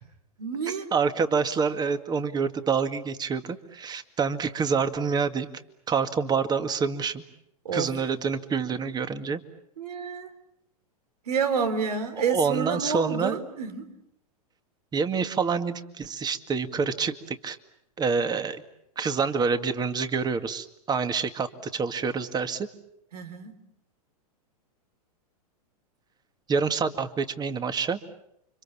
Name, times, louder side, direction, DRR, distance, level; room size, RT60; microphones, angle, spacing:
voice 1, 0.4-0.9 7.6-7.9 9.8-10.3 11.3-13.9 23.1-23.5, right 5 dB, 80° right, 10 dB, 3.8 m, -29 dB
voice 2, 0.9-5.5 5.9-7.2 7.7-9.4 12.2-13.4 14.9-17.6 18.0-18.6 19.0-22.7 26.5-28.0, right 5 dB, 20° right, 10 dB, 2.1 m, -27 dB
29.5 x 26.0 x 7.3 m, 0.76 s
hypercardioid pair, 115°, 19 cm